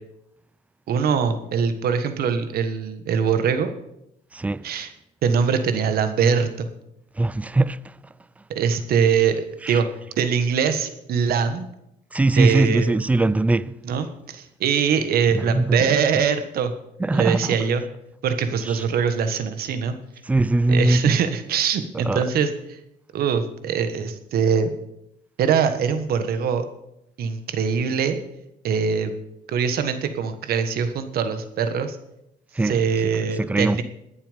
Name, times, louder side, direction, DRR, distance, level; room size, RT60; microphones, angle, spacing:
voice 1, 0.9-3.7 4.6-4.9 5.2-6.7 8.5-9.9 10.2-11.7 12.3-13.0 13.8-16.7 17.1-17.8 18.2-19.9 20.7-22.8 23.1-24.7 25.4-26.7 27.2-28.2 28.6-29.1 29.5-32.0 32.6-33.8, right 6 dB, 65° right, 1.4 m, -22 dB
voice 2, 4.3-4.7 7.2-7.9 9.6-9.8 12.1-13.7 15.3-15.8 17.0-17.6 18.7-18.8 20.3-21.2 21.9-22.2 32.6-32.8 33.4-33.8, right 2 dB, 10° right, 0.4 m, -21 dB
20.5 x 7.2 x 5.2 m
cardioid pair, 110°, 17 cm